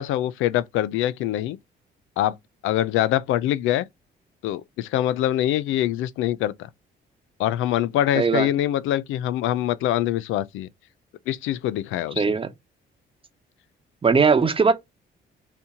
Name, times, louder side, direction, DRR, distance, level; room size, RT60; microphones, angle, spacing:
voice 1, 0.0-1.6 2.2-2.3 2.6-3.8 4.4-6.7 7.4-10.7 11.3-12.2, left 12 dB, 90° left, 0.4 m, -24 dB
voice 2, 8.1-8.5 12.2-12.5 14.0-14.7, right 5 dB, 25° right, 0.9 m, -19 dB
4.2 x 2.8 x 3.6 m
cardioid pair, 90°, 20 cm